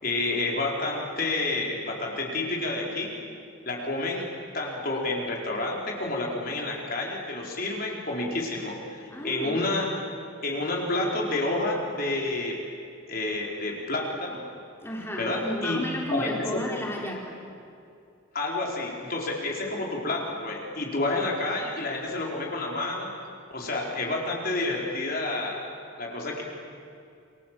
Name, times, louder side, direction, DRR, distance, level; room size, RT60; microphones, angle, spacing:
voice 1, 0.0-3.2 3.7-4.3 4.5-10.0 10.4-12.6 13.1-14.5 15.2-16.4 18.3-23.1 23.5-25.6 26.0-26.4, left 2 dB, 45° left, -1 dB, 4.7 m, -29 dB
voice 2, 9.1-9.6 14.8-17.4, left 1 dB, 10° left, -1 dB, 3.6 m, -33 dB
28.5 x 26.0 x 7.7 m, 2.5 s
head